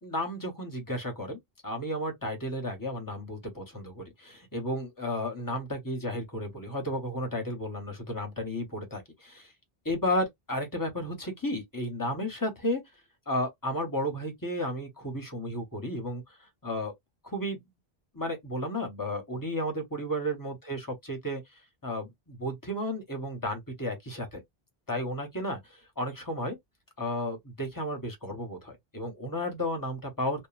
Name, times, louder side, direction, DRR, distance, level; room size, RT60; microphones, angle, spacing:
voice 1, 0.0-9.5 9.8-12.8 13.3-16.4 16.6-16.9 17.2-17.6 18.1-24.4 24.9-26.6 27.0-30.5, equal, 20° left, 0.7 m, -33 dB
2.9 x 2.3 x 2.3 m
omnidirectional pair, 1.1 m